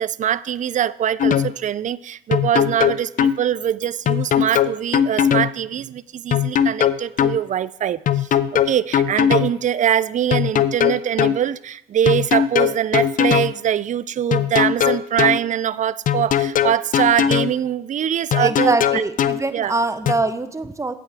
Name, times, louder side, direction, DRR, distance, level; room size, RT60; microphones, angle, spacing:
voice 1, 0.0-19.0 19.5-19.7, right 10 dB, 45° right, 19 dB, 0.4 m, -23 dB
sound 1, 1.2-1.5 2.3-3.4 4.1-5.5 6.3-7.4 8.1-9.5 10.3-11.4 12.1-13.5 14.3-15.4 16.1-17.5 18.3-19.4 20.1-20.2, left 9 dB, 50° left, 0.4 m, -19 dB
voice 2, 18.4-20.9, right 3 dB, 15° right, 10 dB, 0.7 m, -23 dB
8.7 x 8.4 x 3.4 m, 0.76 s
supercardioid pair, 65°, 17 cm